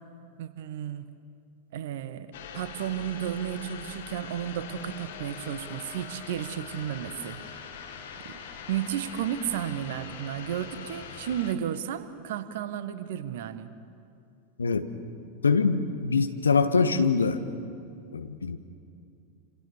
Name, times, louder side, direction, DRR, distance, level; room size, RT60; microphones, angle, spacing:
voice 1, 0.4-1.1 1.7-7.4 8.2-8.4 8.7-13.7, right 10 dB, 55° right, 12 dB, 1.5 m, -33 dB
sound 1, 2.3-11.5, left 7 dB, 55° left, 2.3 m, -42 dB
voice 2, 14.6-14.9 15.4-17.4 18.1-18.6, left 5 dB, 75° left, 9 dB, 1.4 m, -24 dB
28.5 x 27.5 x 7.1 m, 2.5 s
figure-of-eight pair, 90°, 0 cm